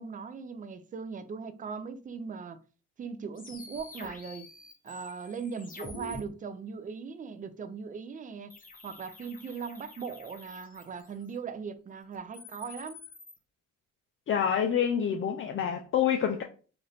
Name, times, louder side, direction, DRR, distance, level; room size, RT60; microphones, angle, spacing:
voice 1, 0.0-2.6 3.0-4.5 4.8-8.5 8.8-13.0, right 5 dB, 30° right, 0.4 m, -39 dB
sound 1, 3.4-6.2 8.5-11.3 12.1-13.4, left 1 dB, 30° left, 0.9 m, -47 dB
voice 2, 14.3-16.4, left 8 dB, 45° left, 0.4 m, -27 dB
3.1 x 2.6 x 4.0 m
cardioid pair, 90°, 30 cm